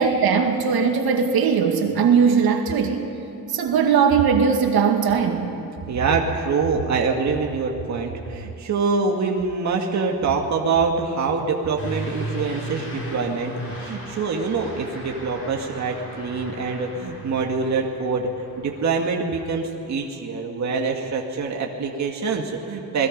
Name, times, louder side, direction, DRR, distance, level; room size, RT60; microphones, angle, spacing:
voice 1, 0.0-3.0 3.5-5.5, right 6 dB, 75° right, 3 dB, 2.2 m, -19 dB
voice 2, 5.9-18.3 18.6-23.1, right 4 dB, 50° right, 1 dB, 1.9 m, -25 dB
Truck / Accelerating revving vroom, 11.8-19.7, equal, 35° left, 5.1 m, -36 dB
28.0 x 20.0 x 5.3 m, 2.9 s
cardioid pair, 140°, 37 cm